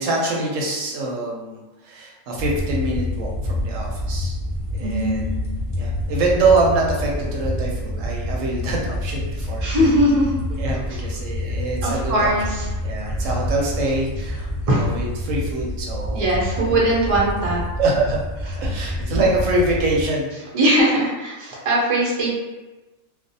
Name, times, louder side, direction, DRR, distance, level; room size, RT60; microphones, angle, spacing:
voice 1, 0.0-4.3 4.7-5.2 5.8-9.6 10.6-12.3 12.8-16.2 16.7-16.8 17.8-20.3, right 2 dB, 70° right, -2 dB, 0.9 m, -24 dB
sound 1, 2.4-20.0, left 1 dB, 65° left, 0.3 m, -27 dB
voice 2, 4.8-5.4 9.6-10.4 10.9-11.0 11.8-13.3 14.7-14.9 16.1-17.6 20.5-22.4, right 1 dB, 50° right, -5 dB, 0.4 m, -21 dB
2.5 x 2.0 x 2.6 m, 1.1 s
omnidirectional pair, 1.5 m